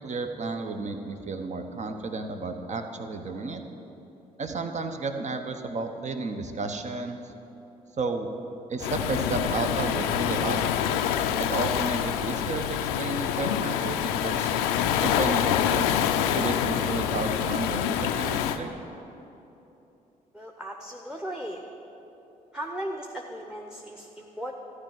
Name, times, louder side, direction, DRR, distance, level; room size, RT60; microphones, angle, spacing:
voice 1, 0.0-3.6 4.4-7.2 8.0-8.3 8.7-10.6 11.4-14.5 15.0-15.9 16.3-18.7, right 3 dB, 40° right, 6 dB, 1.0 m, -32 dB
Waves surf, 8.8-18.6, left 9 dB, 75° left, 0.5 m, -26 dB
voice 2, 20.3-21.6 22.5-24.5, right 1 dB, 5° right, 2 dB, 1.0 m, -36 dB
14.0 x 4.9 x 9.1 m, 3.0 s
figure-of-eight pair, 40°, 19 cm